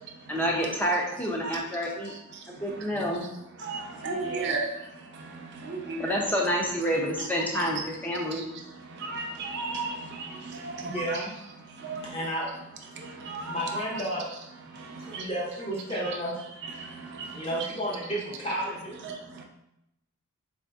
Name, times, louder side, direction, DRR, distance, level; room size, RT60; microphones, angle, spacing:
voice 1, 0.3-2.1 2.5-3.3 6.0-8.5, equal, 10° left, -1 dB, 0.5 m, -28 dB
voice 2, 2.9-3.3 4.2-4.6 10.8-11.4 12.0-12.6 13.5-14.4 15.1-16.4 17.3-19.0, equal, 25° left, -5 dB, 0.9 m, -32 dB
voice 3, 4.0-4.7 5.7-6.2 7.5-7.7 9.1-9.9 11.1-11.2 11.8-12.0 13.3-13.8 19.0-19.1, right 3 dB, 50° right, 1 dB, 0.5 m, -32 dB
4.1 x 2.6 x 2.3 m, 0.83 s
head